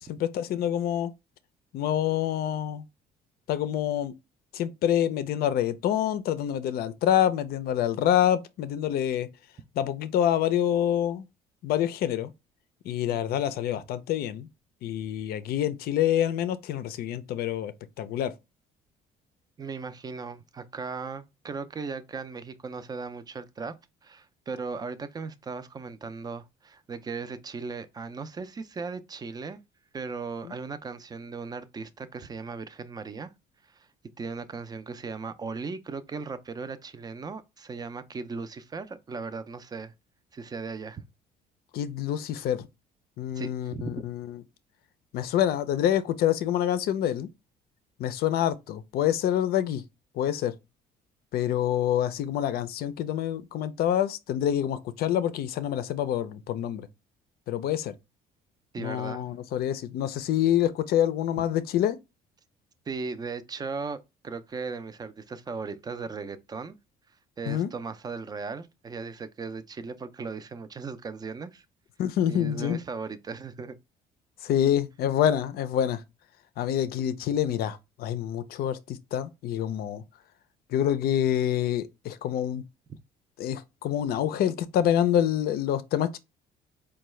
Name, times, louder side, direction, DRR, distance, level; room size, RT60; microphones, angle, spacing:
voice 1, 0.1-1.1 1.7-2.8 3.5-4.1 4.5-9.3 9.8-11.3 11.6-12.3 12.9-14.5 14.8-18.3 30.4-30.5 41.7-42.7 43.2-44.4 45.1-47.3 48.0-49.8 50.2-50.5 51.3-56.9 57.5-57.9 58.8-62.0 67.5-67.7 72.0-72.8 74.4-76.0 76.6-80.0 80.7-82.6 83.4-86.2, left 10 dB, 65° left, 0.5 m, -27 dB
voice 2, 13.0-13.4 19.6-23.7 24.0-29.6 29.9-33.3 33.7-33.9 34.2-39.9 40.3-41.0 43.3-43.9 58.7-59.3 62.9-66.8 67.4-71.6 72.3-73.8, right 4 dB, 25° right, 0.4 m, -37 dB
4.5 x 2.2 x 3.1 m
cardioid pair, 110°, 17 cm